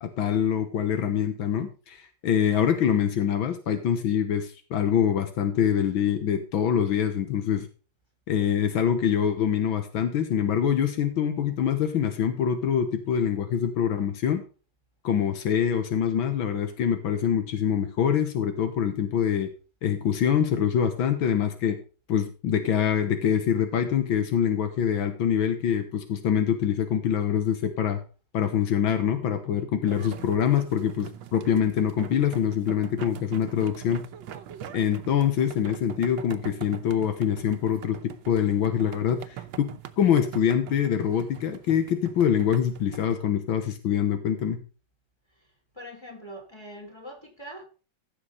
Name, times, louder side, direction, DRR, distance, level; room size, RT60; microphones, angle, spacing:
voice 1, 0.0-7.7 8.3-14.4 15.0-19.5 19.8-21.8 22.1-28.0 28.3-34.0 34.7-39.2 39.6-39.7 40.0-44.6, left 8 dB, 85° left, 1.9 m, -25 dB
sound 1, 29.9-43.2, right 10 dB, 75° right, 1.5 m, -43 dB
voice 2, 45.7-47.7, equal, 15° left, 2.2 m, -42 dB
15.0 x 6.7 x 4.0 m
omnidirectional pair, 2.1 m